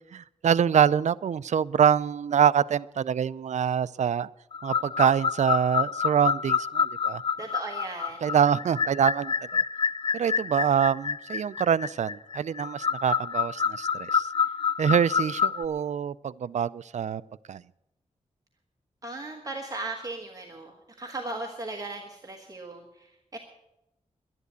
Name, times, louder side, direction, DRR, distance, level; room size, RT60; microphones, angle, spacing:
voice 1, 0.1-4.3 4.6-7.2 8.2-9.6 10.1-14.3 14.8-17.2 17.5-17.6, right 8 dB, 70° right, 18 dB, 0.4 m, -25 dB
sound 1, 4.5-15.6, left 6 dB, 45° left, 0.4 m, -28 dB
voice 2, 7.4-8.3 19.0-23.4, right 2 dB, 30° right, 2 dB, 1.3 m, -37 dB
11.5 x 11.0 x 8.1 m, 0.87 s
wide cardioid pair, 150°, 13 cm